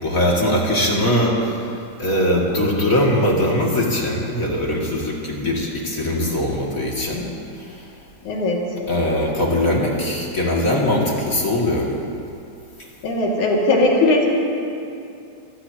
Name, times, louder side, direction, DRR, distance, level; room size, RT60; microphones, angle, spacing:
voice 1, 0.0-1.6 2.0-7.2 7.6-7.8 8.9-11.9, left 1 dB, 30° left, -3 dB, 2.5 m, -21 dB
voice 2, 8.2-8.6 13.0-14.3, left 2 dB, 90° left, -3 dB, 3.8 m, -18 dB
27.0 x 18.5 x 2.9 m, 2.6 s
omnidirectional pair, 3.4 m